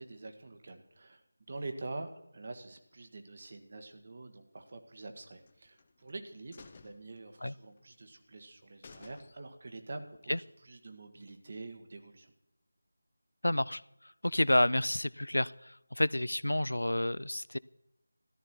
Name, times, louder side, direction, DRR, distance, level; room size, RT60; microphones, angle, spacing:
voice 1, 0.0-12.3, right 2 dB, 45° right, 7 dB, 1.6 m, -46 dB
sound 1, 5.4-6.1 6.5-7.8 8.1-8.2 8.5-8.6 8.8-9.7 10.1-10.2, left 4 dB, 30° left, 0.9 m, -56 dB
voice 2, 13.4-17.6, left 1 dB, 85° left, 21 dB, 0.4 m, -30 dB
13.5 x 11.5 x 4.4 m, 0.86 s
figure-of-eight pair, 165°, 0 cm